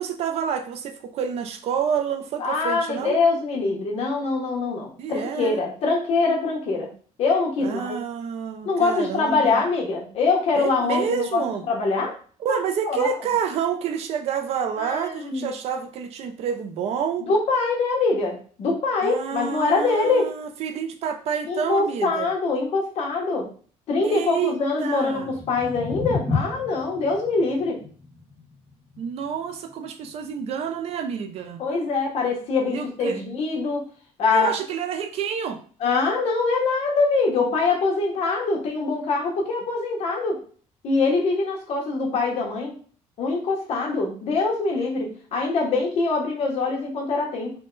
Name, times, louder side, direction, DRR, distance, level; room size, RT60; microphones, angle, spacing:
voice 1, 0.0-3.2 5.0-5.6 7.6-9.6 10.5-11.6 12.4-17.3 19.0-22.3 24.0-24.5 24.8-25.3 29.0-31.6 32.7-33.2 34.3-35.6, right 7 dB, 55° right, 7 dB, 0.5 m, -28 dB
voice 2, 2.4-6.9 7.2-8.0 8.6-12.2 12.5-12.6 12.8-13.1 14.8-15.5 17.2-20.3 21.5-23.5 23.9-27.8 31.6-33.8 34.2-34.6 35.8-40.4 40.8-42.7 43.2-47.5, left 3 dB, 60° left, -1 dB, 1.1 m, -24 dB
sound 1, 25.1-31.2, left 4 dB, 15° right, 0.8 m, -33 dB
3.6 x 2.2 x 3.9 m, 0.43 s
cardioid pair, 165°, 12 cm